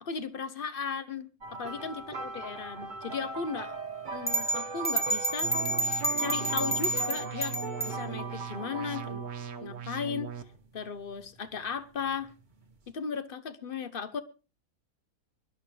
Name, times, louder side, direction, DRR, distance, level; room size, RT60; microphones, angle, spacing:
voice 1, 0.0-1.3 1.6-3.8 4.1-5.6 6.2-7.6 7.8-9.2 9.6-10.3 10.7-12.3 12.9-14.2, left 6 dB, 40° left, 1.0 m, -36 dB
sound 1, 1.4-9.7 10.5-10.8 12.6-12.7, right 3 dB, 35° right, 1.2 m, -39 dB
sound 2, 4.3-8.0, right 1 dB, 10° left, 1.4 m, -29 dB
sound 3, 5.4-10.4, right 7 dB, 85° right, 1.5 m, -39 dB
24.0 x 11.0 x 3.3 m
omnidirectional pair, 1.6 m